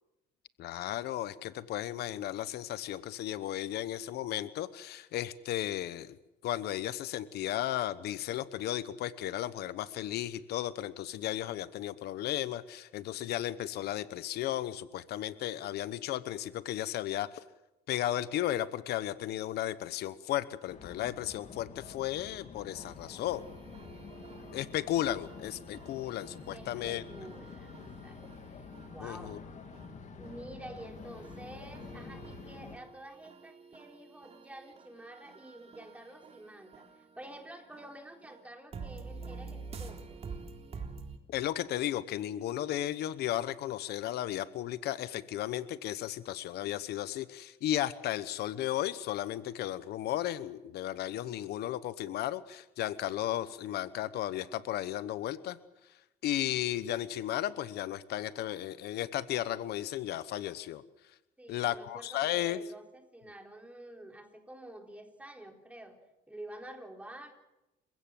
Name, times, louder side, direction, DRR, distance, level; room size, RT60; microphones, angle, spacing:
voice 1, 0.6-6.2 6.4-17.3 17.9-23.4 24.5-27.0 29.0-29.4 41.3-55.6 56.2-60.8 61.5-62.6, left 13 dB, 75° left, 15 dB, 1.0 m, -34 dB
sound 1, 20.7-32.8, left 5 dB, 45° left, 2.5 m, -48 dB
sound 2, 22.8-41.2, right 4 dB, 35° right, 3.4 m, -49 dB
voice 2, 26.1-28.2 28.5-29.4 30.2-40.2 61.4-66.0 66.3-67.3, right 1 dB, 10° right, 3 dB, 3.9 m, -49 dB
28.5 x 16.0 x 7.7 m, 0.97 s
cardioid pair, 110°, 17 cm